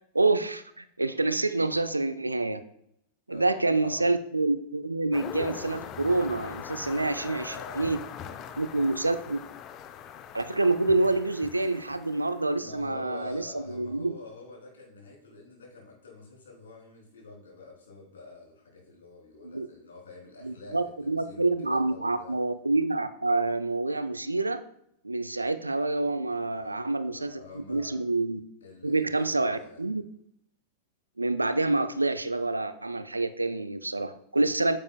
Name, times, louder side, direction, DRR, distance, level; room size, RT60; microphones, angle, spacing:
voice 1, 0.1-2.6 3.3-8.0 8.6-9.4 10.3-14.2 19.4-19.7 20.4-24.6 25.0-28.4 28.8-30.0 31.2-34.8, right 2 dB, 80° right, 12 dB, 0.4 m, -27 dB
voice 2, 3.3-4.0 6.9-7.9 8.2-9.2 12.6-22.4 26.5-28.0 28.6-29.8, left 3 dB, 65° left, -2 dB, 3.2 m, -47 dB
sound 1, 5.1-12.6, left 9 dB, 35° left, 0.5 m, -41 dB
9.4 x 7.4 x 2.3 m, 0.75 s
figure-of-eight pair, 90°, 0 cm